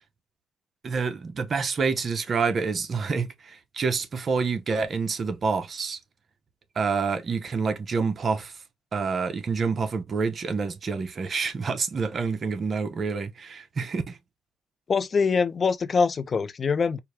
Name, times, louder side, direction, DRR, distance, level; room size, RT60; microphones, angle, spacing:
voice 1, 0.8-6.0 6.8-8.5 8.9-14.2, right 5 dB, 45° right, 0.8 m, -27 dB
voice 2, 14.9-17.0, left 5 dB, 40° left, 0.5 m, -24 dB
4.6 x 2.2 x 3.3 m
cardioid pair, 90°, 0 cm